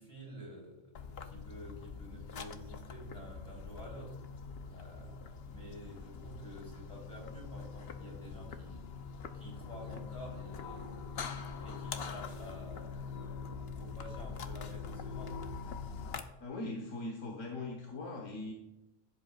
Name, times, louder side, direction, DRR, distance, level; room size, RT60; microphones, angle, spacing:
voice 1, 0.0-4.2 4.7-8.8 9.3-10.9 11.6-15.4, equal, 25° left, -3 dB, 3.9 m, -50 dB
sound 1, 0.9-16.2, left 5 dB, 55° left, 0.9 m, -43 dB
voice 2, 16.4-18.5, left 2 dB, 85° left, 0 dB, 1.6 m, -40 dB
15.5 x 7.8 x 2.4 m, 0.94 s
omnidirectional pair, 1.3 m